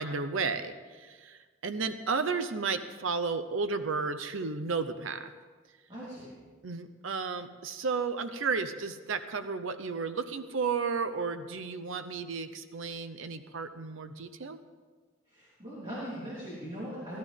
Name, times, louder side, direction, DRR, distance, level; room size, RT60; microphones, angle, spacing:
voice 1, 0.0-5.3 6.6-14.6, right 4 dB, 85° right, 9 dB, 0.7 m, -33 dB
voice 2, 5.9-6.3 15.3-17.2, equal, 25° right, -9 dB, 3.5 m, -40 dB
18.0 x 13.0 x 3.6 m, 1.4 s
head